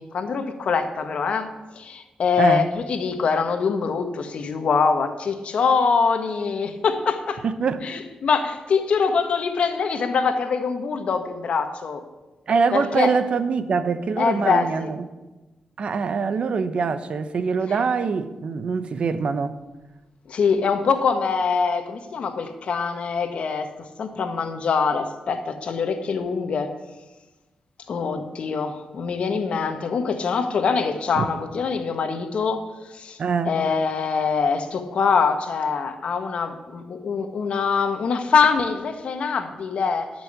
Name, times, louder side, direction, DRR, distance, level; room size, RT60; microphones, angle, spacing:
voice 1, 0.0-7.4 7.8-12.0 12.7-13.1 14.2-14.9 20.3-23.7 24.0-26.7 27.9-32.6 32.9-33.2 33.5-40.1, left 5 dB, 65° left, 7 dB, 1.3 m, -24 dB
voice 2, 7.4-7.8 12.5-15.1 15.8-19.6 31.1-31.3 33.2-33.5, right 5 dB, 60° right, 11 dB, 0.9 m, -24 dB
12.0 x 6.2 x 8.8 m, 1.1 s
cardioid pair, 95°, 2 cm